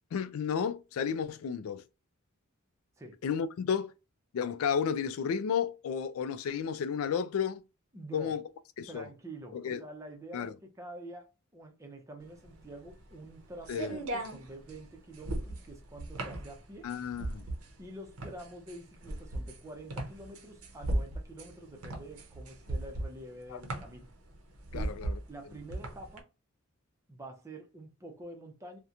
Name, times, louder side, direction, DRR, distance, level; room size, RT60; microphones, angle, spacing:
voice 1, 0.1-1.8 3.2-3.9 4.3-7.6 8.1-8.4 8.8-9.0 9.5-9.8 10.3-10.5 13.7-14.0 16.8-17.5 23.5-23.6 24.7-25.2, left 7 dB, 75° left, 0.3 m, -32 dB
voice 2, 7.9-8.4 8.9-11.3 11.5-16.9 17.8-24.1 24.7-24.9 25.3-26.3 27.1-28.8, right 1 dB, 15° right, 0.5 m, -47 dB
sound 1, 12.3-26.2, right 1 dB, 90° right, 0.7 m, -38 dB
2.8 x 2.1 x 2.4 m
head